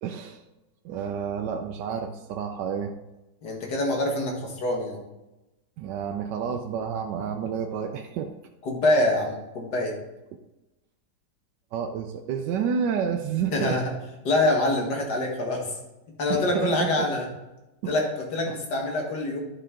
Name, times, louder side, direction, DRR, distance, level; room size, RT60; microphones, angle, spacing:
voice 1, 0.0-0.4 0.8-2.9 5.8-8.3 11.7-13.8 16.3-17.1 17.8-17.9 18.5-18.6, right 7 dB, 80° right, 4 dB, 1.2 m, -30 dB
voice 2, 3.4-5.0 8.6-9.9 13.5-13.9 14.2-15.7 16.2-17.3 17.9-19.4, left 2 dB, 70° left, 0 dB, 2.1 m, -25 dB
10.0 x 5.5 x 3.7 m, 1.0 s
omnidirectional pair, 1.9 m